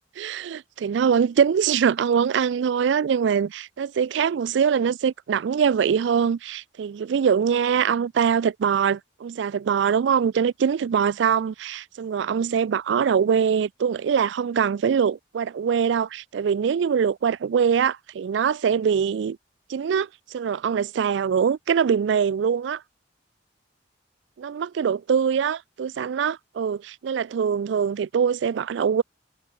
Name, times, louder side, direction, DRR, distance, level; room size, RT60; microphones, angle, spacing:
voice 1, 0.2-19.4 19.7-22.8 24.4-29.0, right 7 dB, 75° right, 0.3 m, -23 dB
head